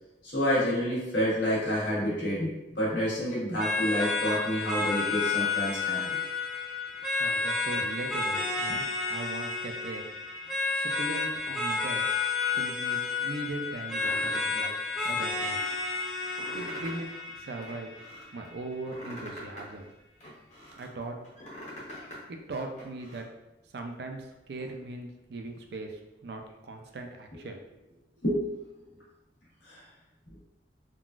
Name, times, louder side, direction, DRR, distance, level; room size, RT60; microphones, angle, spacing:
voice 1, 0.2-6.2 28.2-28.6 29.6-29.8, equal, 85° left, -8 dB, 1.4 m, -29 dB
sound 1, 3.6-18.6, left 4 dB, ahead, 0.5 m, -31 dB
voice 2, 6.9-10.1 10.7-12.0 12.6-14.7 15.0-15.6 16.5-17.9 18.3-19.9 20.8-21.2 22.3-23.3 23.7-27.6, right 2 dB, 65° right, 4 dB, 0.4 m, -39 dB
sound 2, 14.0-14.6 15.0-15.7 16.2-17.1 17.4-18.3 18.7-20.9 21.2-22.2 22.5-23.2, equal, 40° left, 0.9 m, -44 dB
3.7 x 2.4 x 2.4 m, 0.97 s
head